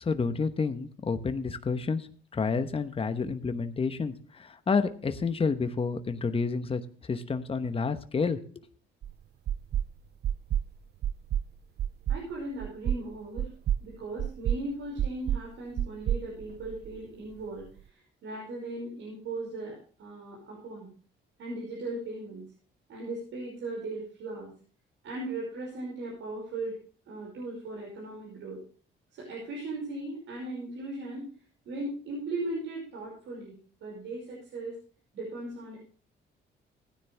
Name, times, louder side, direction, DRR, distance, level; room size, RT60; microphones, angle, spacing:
voice 1, 0.0-2.1 2.3-6.8 7.1-8.4, left 4 dB, 30° left, 9 dB, 1.0 m, -29 dB
sound 1, 9.0-9.1 9.5-9.9 10.2-10.7 11.0-11.5 11.8-12.2 12.6-13.0 13.4-13.8 14.2-14.6 15.0-15.4 15.8-17.0, right 10 dB, 55° right, 0.5 m, -29 dB
voice 2, 12.1-13.5 13.8-20.9 21.4-22.4 22.9-24.5 25.0-26.8 27.1-28.6 29.1-31.3 31.7-33.5 33.8-34.8 35.1-35.8, right 2 dB, 75° right, -3 dB, 5.4 m, -38 dB
16.0 x 10.0 x 3.4 m, 0.42 s
cardioid pair, 90°, 20 cm